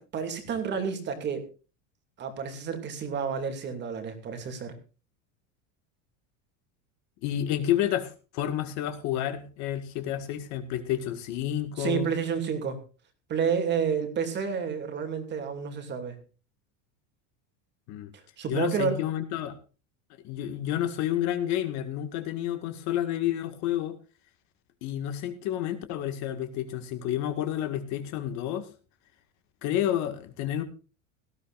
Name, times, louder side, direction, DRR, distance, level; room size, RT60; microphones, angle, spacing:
voice 1, 0.1-1.4 2.2-4.7 11.8-12.8 13.3-16.2 18.4-19.0, right 6 dB, 30° right, 7 dB, 2.6 m, -30 dB
voice 2, 7.2-12.1 17.9-18.1 18.5-19.6 20.2-24.0 24.8-28.7 29.6-30.6, left 11 dB, 50° left, 9 dB, 1.9 m, -30 dB
18.0 x 14.0 x 2.5 m, 0.34 s
cardioid pair, 160°, 36 cm